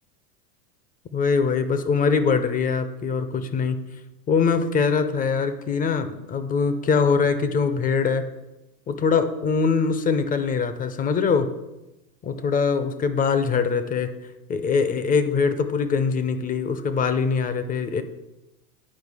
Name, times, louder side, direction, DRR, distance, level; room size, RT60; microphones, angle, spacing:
voice 1, 1.1-3.8 4.3-8.3 8.9-11.5 12.2-14.1 14.5-18.0, left 5 dB, 20° left, 11 dB, 0.4 m, -23 dB
9.5 x 4.8 x 4.7 m, 0.99 s
hypercardioid pair, 105°, 46 cm